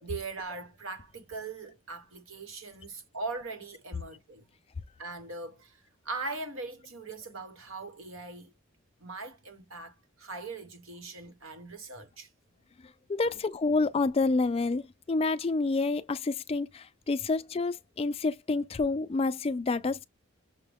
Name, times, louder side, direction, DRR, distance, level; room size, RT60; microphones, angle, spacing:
voice 1, 0.0-4.4 5.0-8.5 9.0-12.3 13.2-13.4, right 3 dB, 75° right, 1.3 m, -40 dB
voice 2, 13.1-20.0, left 3 dB, 30° left, 0.4 m, -28 dB
6.5 x 2.2 x 3.5 m
head